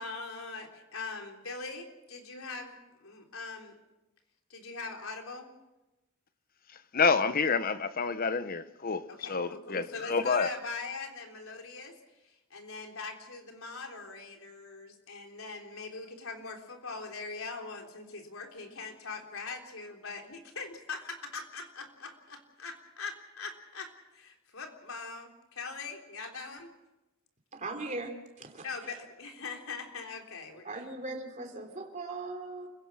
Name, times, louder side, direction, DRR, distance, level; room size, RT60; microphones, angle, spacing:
voice 1, 0.0-3.8 4.5-5.5 9.1-26.7 28.6-31.1, left 4 dB, 85° left, 3.6 m, -42 dB
voice 2, 6.9-10.5, left 5 dB, 45° left, 0.9 m, -28 dB
voice 3, 27.5-29.0 30.6-32.7, right 2 dB, 35° right, 3.3 m, -39 dB
28.5 x 16.5 x 6.3 m
head